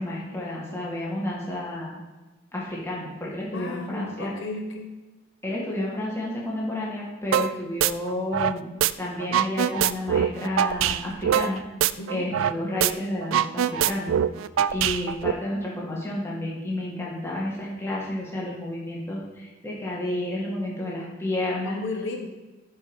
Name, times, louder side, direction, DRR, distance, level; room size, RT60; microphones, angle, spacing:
voice 1, 0.0-2.0 2.5-4.3 5.4-8.7 9.0-11.6 12.1-14.1 14.7-21.8, left 1 dB, 15° left, -5 dB, 1.8 m, -31 dB
voice 2, 3.5-4.9 12.0-12.3 21.6-22.3, left 3 dB, 65° left, 3 dB, 1.1 m, -34 dB
sound 1, 7.3-7.5 7.8-8.9 9.2-12.5 12.8-12.9 13.2-15.3, right 10 dB, 80° right, 0.3 m, -23 dB
11.0 x 4.6 x 5.3 m, 1.2 s
head